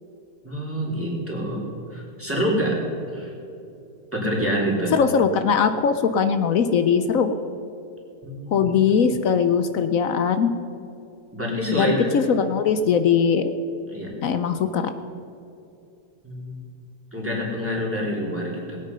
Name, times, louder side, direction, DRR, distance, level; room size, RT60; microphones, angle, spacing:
voice 1, 0.4-1.6 1.9-2.8 3.1-3.3 4.1-4.9 8.2-8.8 11.3-12.1 13.9-14.1 16.2-16.6 17.1-18.8, equal, 10° right, -4 dB, 3.4 m, -26 dB
voice 2, 4.9-7.4 8.5-10.5 11.7-13.5 14.2-14.9, left 6 dB, 65° left, 9 dB, 1.0 m, -20 dB
20.0 x 9.1 x 5.5 m, 2.7 s
omnidirectional pair, 1.7 m